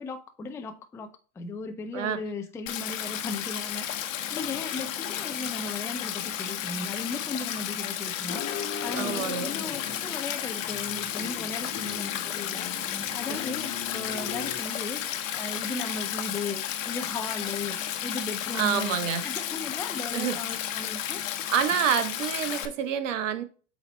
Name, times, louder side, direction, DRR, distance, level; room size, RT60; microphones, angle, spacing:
voice 1, 0.0-19.0 19.2-21.2 21.7-21.8, left 3 dB, 5° left, 0.4 m, -37 dB
Stream, 2.7-22.7, left 10 dB, 75° left, 1.3 m, -33 dB
sound 1, 8.3-14.6, left 7 dB, 35° left, 1.3 m, -40 dB
voice 2, 9.0-9.5 13.3-13.4 18.5-19.2 20.1-20.4 21.5-23.4, right 8 dB, 70° right, 1.3 m, -27 dB
8.3 x 3.2 x 4.1 m
hypercardioid pair, 110°, 39 cm